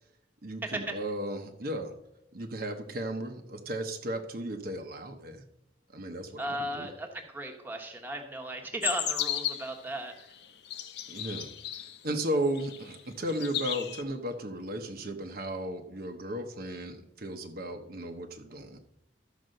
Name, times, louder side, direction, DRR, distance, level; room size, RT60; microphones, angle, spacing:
voice 1, 0.4-1.9 2.3-5.4 5.9-6.9 11.1-18.8, right 1 dB, 50° right, 4 dB, 1.0 m, -35 dB
voice 2, 6.4-10.1, right 1 dB, 10° right, 2 dB, 1.2 m, -36 dB
sound 1, 8.8-9.8 10.4-12.0 12.5-13.0 13.3-14.0, left 11 dB, 60° left, 0.8 m, -34 dB
12.5 x 5.1 x 6.5 m, 0.82 s
head